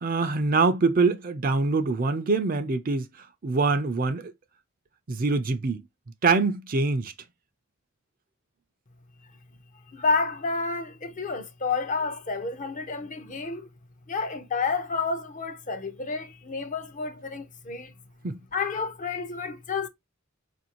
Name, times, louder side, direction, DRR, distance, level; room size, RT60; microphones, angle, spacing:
voice 1, 0.0-3.1 3.4-4.3 5.1-5.8 6.2-7.1 18.2-18.4, right 3 dB, 45° right, 0.5 m, -24 dB
voice 2, 9.9-13.7 14.1-17.9 18.5-19.9, left 4 dB, 40° left, 0.6 m, -30 dB
4.0 x 2.6 x 2.8 m
head